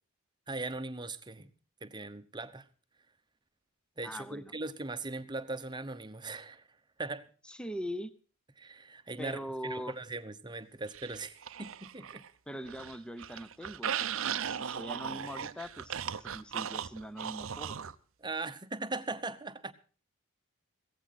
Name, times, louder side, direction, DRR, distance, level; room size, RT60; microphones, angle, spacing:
voice 1, 0.5-1.5 1.8-2.7 4.0-6.7 7.0-7.3 8.6-12.2 18.2-19.7, right 3 dB, 20° right, 11 dB, 0.9 m, -39 dB
voice 2, 4.0-4.5 7.5-8.1 9.2-10.0 12.5-17.8, equal, 5° left, 14 dB, 0.7 m, -42 dB
sound 1, 10.9-12.3 12.6-17.9, right 8 dB, 60° right, 0.7 m, -37 dB
16.5 x 14.5 x 4.2 m, 0.39 s
head